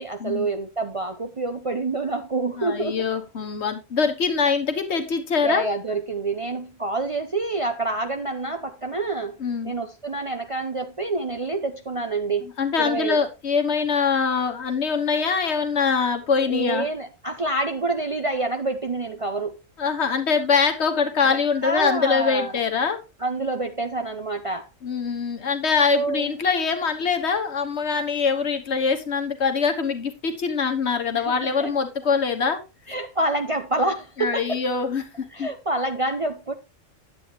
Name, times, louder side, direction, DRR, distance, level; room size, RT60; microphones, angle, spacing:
voice 1, 0.0-3.1 5.4-9.4 9.6-12.5 12.8-13.2 16.5-19.6 21.3-22.6 23.2-24.7 25.9-26.3 31.1-31.7 32.9-34.6 35.3-36.5, right 2 dB, 35° right, 0.6 m, -27 dB
voice 2, 2.6-5.7 9.4-9.7 12.6-16.9 19.8-23.0 24.8-32.6 34.2-35.0 35.4-35.5, left 5 dB, 60° left, 1.4 m, -23 dB
9.7 x 8.3 x 2.9 m
omnidirectional pair, 1.3 m